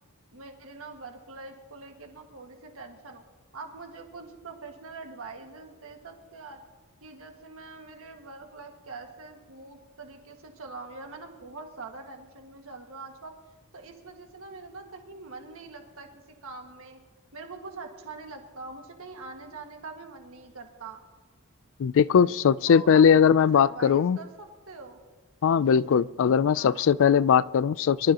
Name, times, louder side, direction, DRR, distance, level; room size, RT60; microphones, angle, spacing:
voice 1, 0.3-3.2 3.5-6.6 7.0-13.3 13.7-16.1 16.4-17.0 17.3-21.0 22.7-23.2 23.5-25.0 26.5-26.9, right 3 dB, 65° right, 3 dB, 1.8 m, -43 dB
voice 2, 21.8-24.2 25.4-28.1, left 7 dB, 60° left, 20 dB, 0.4 m, -20 dB
24.0 x 13.5 x 2.9 m, 1.3 s
head